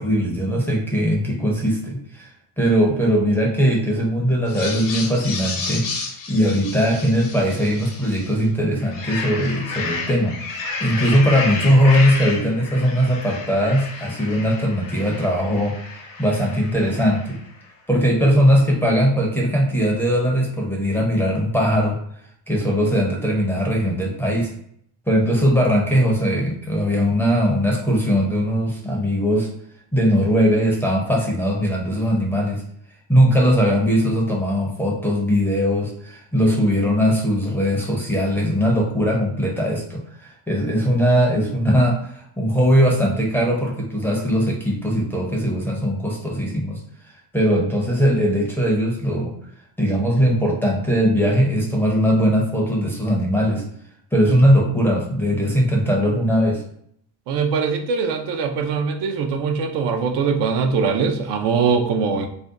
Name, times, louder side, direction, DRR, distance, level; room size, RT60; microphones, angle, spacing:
voice 1, 0.0-2.3 2.6-15.7 16.2-17.4 17.9-22.0 22.5-24.5 25.1-29.5 29.9-32.6 33.1-46.8 47.3-49.3 49.8-53.6 54.1-56.6, equal, 5° left, -3 dB, 0.6 m, -20 dB
Experiments with Parrots, 4.5-8.4 8.8-17.5, left 4 dB, 45° left, 0.7 m, -31 dB
voice 2, 57.3-62.3, right 5 dB, 55° right, 4 dB, 0.6 m, -22 dB
2.6 x 2.1 x 3.6 m, 0.68 s
cardioid pair, 115°, 49 cm